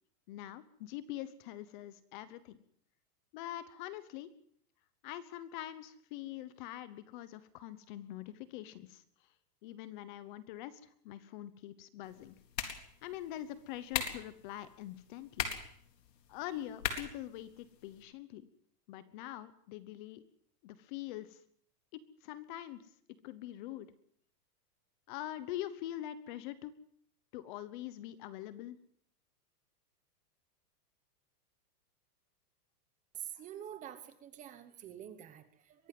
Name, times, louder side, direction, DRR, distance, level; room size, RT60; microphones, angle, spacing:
voice 1, 0.3-2.6 3.3-4.3 5.0-9.0 9.6-12.4 13.0-15.5 16.3-18.5 18.9-20.2 20.6-21.4 21.9-22.8 23.2-23.9 25.1-26.7 27.3-28.8, left 13 dB, 30° left, 15 dB, 1.0 m, -44 dB
sound 1, 12.0-18.0, left 8 dB, 90° left, 4.1 m, -41 dB
voice 2, 33.1-35.9, right 10 dB, 15° right, 11 dB, 1.0 m, -47 dB
23.0 x 16.0 x 7.7 m, 0.64 s
supercardioid pair, 170°, 48 cm